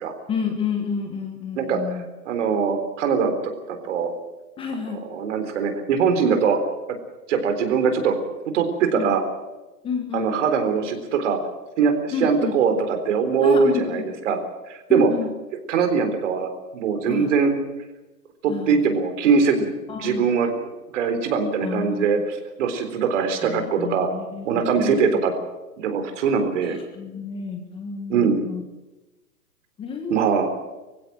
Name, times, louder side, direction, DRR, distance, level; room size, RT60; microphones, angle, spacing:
voice 1, 0.3-2.1 4.6-5.0 8.9-9.1 9.8-10.3 12.1-12.6 13.4-14.0 14.9-15.3 17.1-17.3 18.5-18.8 19.9-20.3 21.6-22.1 23.3-25.0 26.6-28.6 29.8-30.2, left 6 dB, 10° left, 5 dB, 1.3 m, -30 dB
voice 2, 2.3-4.1 4.9-6.6 7.3-8.2 8.5-9.2 10.1-11.4 11.8-14.4 14.7-15.1 15.7-17.5 18.4-19.7 20.0-20.7 20.9-24.1 24.5-25.3 25.8-26.8 28.1-28.4 30.1-30.5, right 6 dB, 50° right, 7 dB, 3.9 m, -22 dB
24.0 x 16.0 x 7.7 m, 1.1 s
hypercardioid pair, 155°, 48 cm